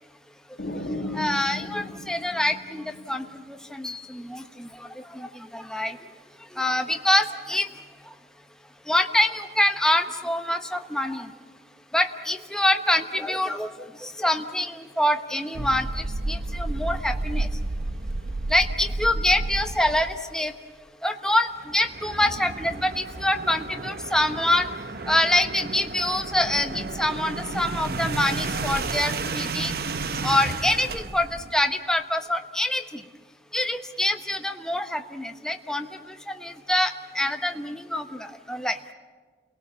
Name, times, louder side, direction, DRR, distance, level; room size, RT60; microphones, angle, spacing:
sound 1, 0.6-3.4, left 1 dB, 70° left, 2.3 m, -35 dB
voice 1, 1.1-6.0 6.5-7.7 8.9-11.3 11.9-17.5 18.5-20.5 21.0-24.7 25.1-29.8 30.2-33.0 33.5-38.8, left 1 dB, 5° left, 6 dB, 1.1 m, -25 dB
sound 2, 15.5-20.2 21.6-31.5, right 3 dB, 60° right, 0.8 m, -32 dB
30.0 x 18.5 x 7.3 m, 1.5 s
head